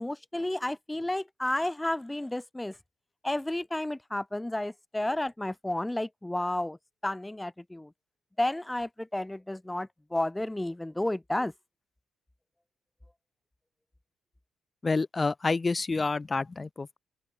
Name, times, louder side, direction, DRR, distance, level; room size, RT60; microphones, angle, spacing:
voice 1, 0.0-2.7 3.2-6.8 7.0-7.9 8.4-11.5, left 1 dB, 10° left, 0.4 m, -31 dB
voice 2, 14.8-17.0, left 3 dB, 25° left, 1.0 m, -28 dB
open air
cardioid pair, 90°, 0 cm